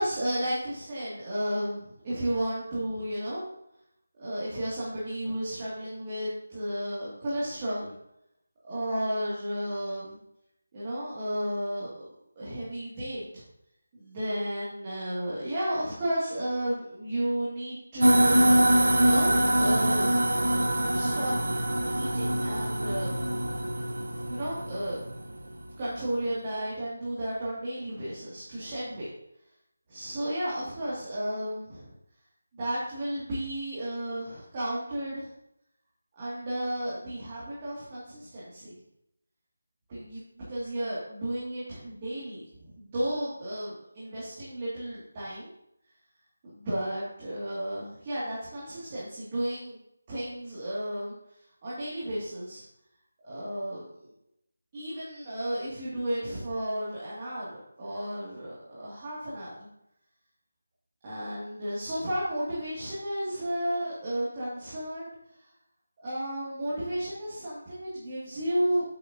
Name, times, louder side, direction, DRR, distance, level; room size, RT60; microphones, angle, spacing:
voice 1, 0.0-3.4 4.2-7.9 8.6-10.2 10.7-12.0 12.4-13.4 13.9-18.4 19.0-20.2 20.9-21.3 21.9-23.1 24.3-25.0 25.8-29.1 29.9-31.9 32.5-35.3 36.1-38.8 39.9-42.5 42.8-45.5 46.4-49.8 50.1-51.1 51.6-52.6 53.2-54.1 54.7-59.7 61.0-65.1 66.0-68.8, right 1 dB, 20° right, -9 dB, 2.4 m, -33 dB
sound 1, 18.0-25.6, right 1 dB, 90° right, 1.2 m, -24 dB
9.9 x 7.9 x 2.8 m, 0.78 s
figure-of-eight pair, 175°, 0 cm